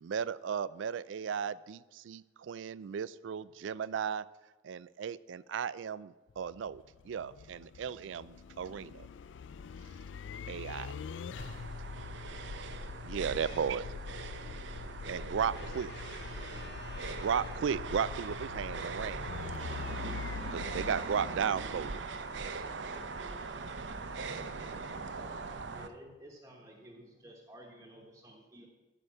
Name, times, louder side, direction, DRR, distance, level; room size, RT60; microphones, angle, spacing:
voice 1, 0.0-4.3 4.6-9.1 10.5-11.0 13.0-13.9 15.1-15.9 17.1-19.3 20.5-22.0, right 7 dB, 90° right, 19 dB, 0.4 m, -35 dB
sound 1, 6.3-22.3, left 5 dB, 80° left, 0.4 m, -44 dB
sound 2, 11.4-25.9, right 4 dB, 70° right, 0.7 m, -41 dB
voice 2, 13.4-13.7 15.5-17.6, left 5 dB, 65° left, 7 dB, 1.1 m, -51 dB
voice 3, 25.7-28.7, equal, 15° right, -1 dB, 1.2 m, -53 dB
14.0 x 5.0 x 7.4 m, 1.2 s
head